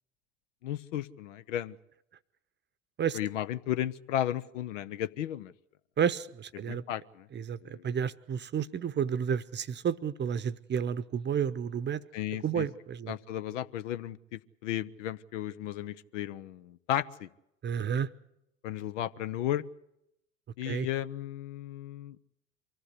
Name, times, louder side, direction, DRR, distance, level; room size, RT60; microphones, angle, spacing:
voice 1, 0.6-1.8 3.1-5.5 6.7-7.3 7.6-7.8 12.1-12.7 13.1-17.3 18.6-19.6 20.6-22.2, left 12 dB, 75° left, 15 dB, 0.7 m, -34 dB
voice 2, 6.0-6.8 7.3-12.0 12.4-13.1 17.6-18.1 20.7-20.9, right 8 dB, 30° right, 15 dB, 0.8 m, -31 dB
24.0 x 15.5 x 8.2 m, 0.84 s
hypercardioid pair, 70°, 38 cm